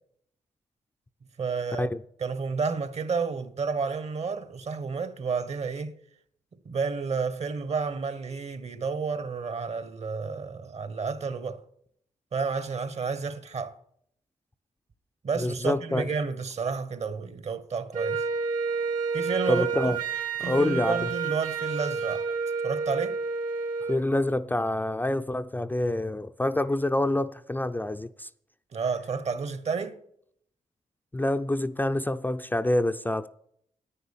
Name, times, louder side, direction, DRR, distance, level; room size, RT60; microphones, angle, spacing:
voice 1, 1.4-1.9 2.2-5.9 6.6-11.6 12.3-13.7 15.2-18.2 19.1-19.9 20.4-22.3 22.6-23.2 28.7-30.0, right 5 dB, 50° right, 1.1 m, -31 dB
voice 2, 15.4-16.1 19.5-20.0 20.4-21.1 23.8-28.3 31.1-33.3, left 1 dB, 15° left, 0.4 m, -27 dB
Wind instrument woodwind instrument, 17.9-24.0, right 5 dB, 85° right, 1.9 m, -30 dB
10.0 x 9.5 x 7.2 m
cardioid pair, 90°, 14 cm